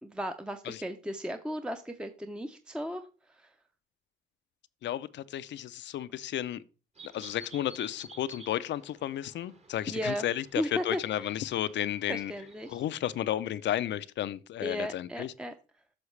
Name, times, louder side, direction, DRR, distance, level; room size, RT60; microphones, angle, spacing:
voice 1, 0.0-3.5 9.9-10.2 10.6-11.0 12.1-12.8 14.6-15.5, equal, 5° right, 0.6 m, -35 dB
voice 2, 4.8-6.6 7.0-12.3 12.7-15.3, left 12 dB, 65° left, 0.5 m, -33 dB
sound 1, 7.0-12.7, right 2 dB, 35° right, 1.3 m, -53 dB
9.6 x 6.3 x 3.2 m
cardioid pair, 90°, 20 cm